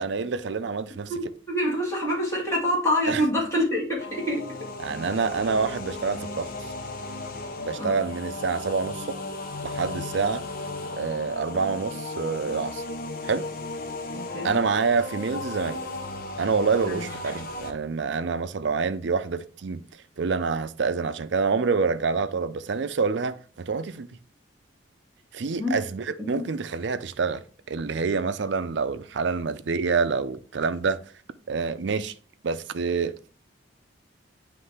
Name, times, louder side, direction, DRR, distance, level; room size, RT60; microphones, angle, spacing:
voice 1, 0.0-1.1 3.0-3.2 4.8-6.5 7.6-9.2 9.6-10.4 11.0-12.8 13.2-13.5 14.4-15.8 16.4-19.8 20.2-24.2 25.3-31.0 31.5-32.1 32.4-33.1, right 5 dB, 65° right, 0.5 m, -27 dB
voice 2, 1.1-4.4 7.8-8.0 14.1-14.5 16.9-17.0 25.6-25.8 26.2-26.4, equal, 15° left, 2.3 m, -26 dB
sound 1, 4.0-17.7, left 2 dB, 50° left, 0.8 m, -35 dB
9.4 x 3.2 x 3.3 m
head